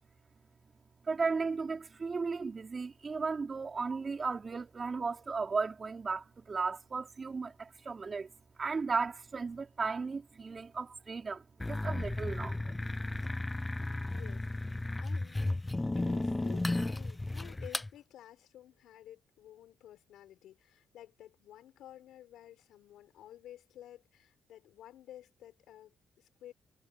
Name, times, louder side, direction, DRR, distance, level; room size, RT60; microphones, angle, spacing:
voice 1, 1.0-8.3 8.6-12.7, right 4 dB, 35° right, 3.2 m, -35 dB
sound 1, 11.6-17.9, left 2 dB, 15° left, 0.4 m, -34 dB
voice 2, 14.1-15.7 15.9-26.5, left 12 dB, 80° left, 6.9 m, -53 dB
cardioid pair, 90°, 0 cm